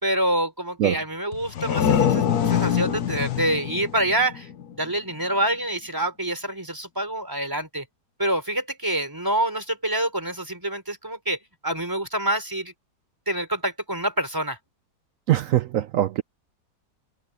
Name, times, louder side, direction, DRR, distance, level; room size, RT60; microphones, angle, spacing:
voice 1, 0.0-4.5 4.7-7.9 8.2-12.7 13.3-14.6, right 1 dB, 10° right, 4.0 m, -26 dB
sound 1, 1.3-4.9, left 8 dB, 65° left, 1.5 m, -24 dB
voice 2, 15.3-16.2, right 12 dB, 70° right, 0.8 m, -22 dB
omnidirectional pair, 1.8 m